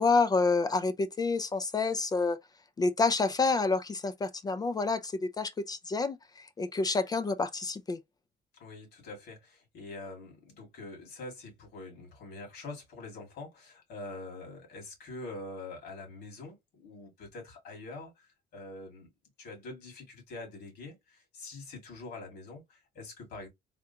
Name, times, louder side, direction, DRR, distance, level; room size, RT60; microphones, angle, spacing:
voice 1, 0.0-2.4 2.8-8.0, left 3 dB, 25° left, 0.3 m, -28 dB
voice 2, 8.6-19.1 19.4-23.5, left 2 dB, 75° left, 2.1 m, -45 dB
3.5 x 2.4 x 2.8 m
cardioid pair, 110°, 17 cm